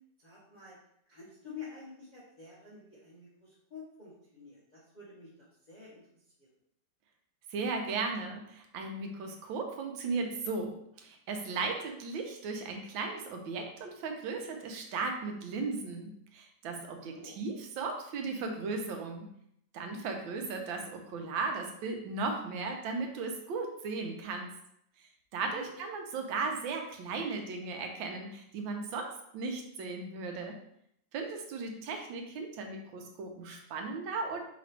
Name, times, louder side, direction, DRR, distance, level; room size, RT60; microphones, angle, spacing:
voice 1, 0.2-0.8 1.1-5.3 5.7-6.0 16.9-17.3 25.5-25.7, left 5 dB, 35° left, -7 dB, 0.7 m, -49 dB
voice 2, 7.5-19.3 19.7-24.5 25.3-30.6 31.1-34.4, right 4 dB, 85° right, 3 dB, 1.5 m, -36 dB
4.9 x 3.0 x 3.2 m, 0.73 s
omnidirectional pair, 2.1 m